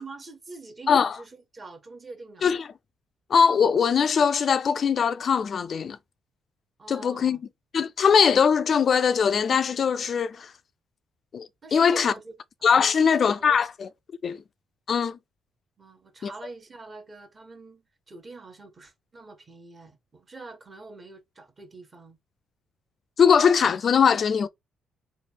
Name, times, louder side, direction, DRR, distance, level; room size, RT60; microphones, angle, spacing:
voice 1, 0.0-2.5 6.8-7.4 11.6-12.3 12.8-13.7 15.8-22.2, right 3 dB, 30° right, 1.2 m, -44 dB
voice 2, 3.3-6.0 6.9-7.4 7.7-10.5 11.3-12.1 12.6-13.9 14.2-14.4 14.9-15.2 16.2-16.3 23.2-24.5, left 6 dB, 50° left, 0.3 m, -21 dB
3.3 x 2.3 x 4.3 m
cardioid pair, 90°, 0 cm